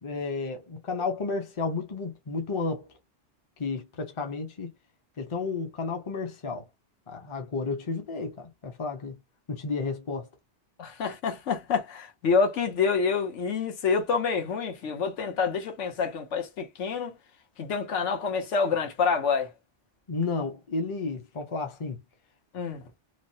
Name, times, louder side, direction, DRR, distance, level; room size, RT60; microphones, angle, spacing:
voice 1, 0.0-2.9 3.6-4.7 5.2-6.6 7.1-9.2 9.5-10.3 20.1-22.0, left 4 dB, 30° left, 0.6 m, -32 dB
voice 2, 10.8-17.1 17.6-19.5 22.5-22.9, left 5 dB, 85° left, 1.2 m, -27 dB
3.1 x 2.1 x 2.7 m
omnidirectional pair, 1.2 m